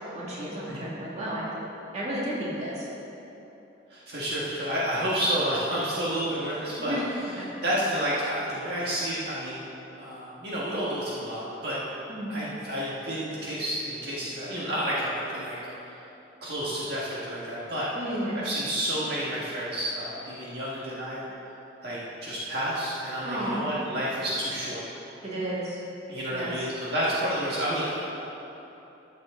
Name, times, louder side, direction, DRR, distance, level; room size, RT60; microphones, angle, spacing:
voice 1, 0.1-1.5 1.9-2.9 6.8-7.0 12.1-12.3 17.9-18.4 23.2-23.7 25.2-25.8 26.3-26.5, right 1 dB, 35° right, -6 dB, 2.1 m, -32 dB
voice 2, 3.9-7.0 7.6-9.7 10.0-11.8 12.3-15.5 16.4-17.9 18.4-21.3 21.8-24.8 26.1-28.0, equal, 55° right, -7 dB, 1.7 m, -30 dB
14.0 x 7.4 x 3.8 m, 3.0 s
head